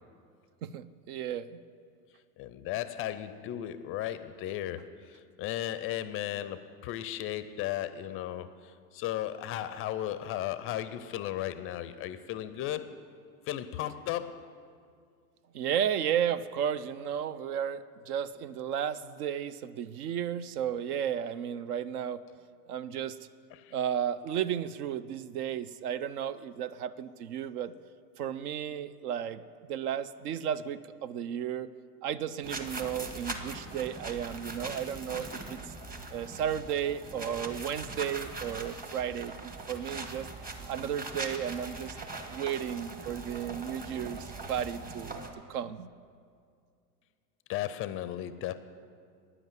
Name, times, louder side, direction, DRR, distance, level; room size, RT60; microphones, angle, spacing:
voice 1, 0.6-1.6 15.5-22.2 22.7-23.2 23.7-27.7 28.2-29.4 29.7-31.7 32.0-35.6 36.1-40.3 40.7-42.0 42.3-45.2 45.5-45.9, right 9 dB, 70° right, 15 dB, 0.7 m, -33 dB
voice 2, 2.4-13.0 13.5-14.5 23.5-23.7 47.5-48.5, left 12 dB, 30° left, 13 dB, 0.4 m, -35 dB
sound 1, 32.4-45.3, right 2 dB, 20° right, 1.2 m, -41 dB
9.8 x 7.9 x 9.2 m, 2.3 s
hypercardioid pair, 100°, 47 cm